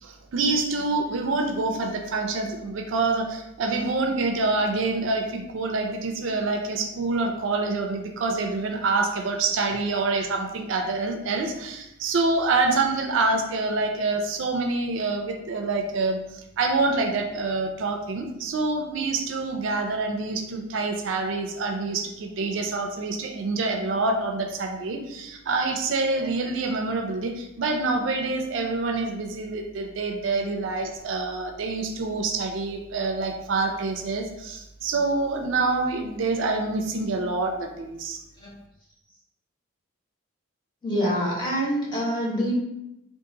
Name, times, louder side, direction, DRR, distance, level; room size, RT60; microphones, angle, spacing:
voice 1, 0.0-38.2, right 3 dB, 60° right, 4 dB, 0.4 m, -26 dB
voice 2, 40.8-42.5, equal, 20° left, -6 dB, 0.9 m, -25 dB
2.7 x 2.4 x 3.8 m, 0.87 s
head